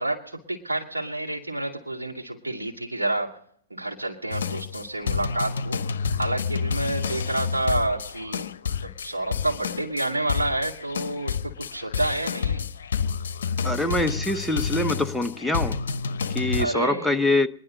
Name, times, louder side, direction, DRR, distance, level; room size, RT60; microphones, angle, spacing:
voice 1, 0.0-3.4 3.7-5.9 6.2-8.5 8.8-12.7 16.6-17.2, right 2 dB, 90° right, 2.5 m, -29 dB
sound 1, 4.3-16.7, left 6 dB, 70° left, 0.7 m, -29 dB
voice 2, 13.6-15.8 16.3-17.5, left 2 dB, ahead, 0.8 m, -24 dB
25.5 x 10.5 x 3.9 m
hypercardioid pair, 110°, 0 cm